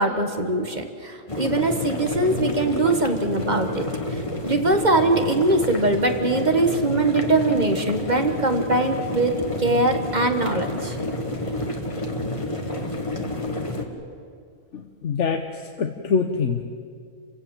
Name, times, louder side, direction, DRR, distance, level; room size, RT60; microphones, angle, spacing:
voice 1, 0.0-11.0, right 2 dB, 35° right, 6 dB, 1.5 m, -22 dB
sound 1, 1.3-13.8, left 1 dB, 25° left, 1.7 m, -29 dB
voice 2, 14.7-15.4 15.8-16.6, left 5 dB, 65° left, 5 dB, 1.2 m, -24 dB
28.5 x 16.5 x 7.6 m, 2.3 s
omnidirectional pair, 1.4 m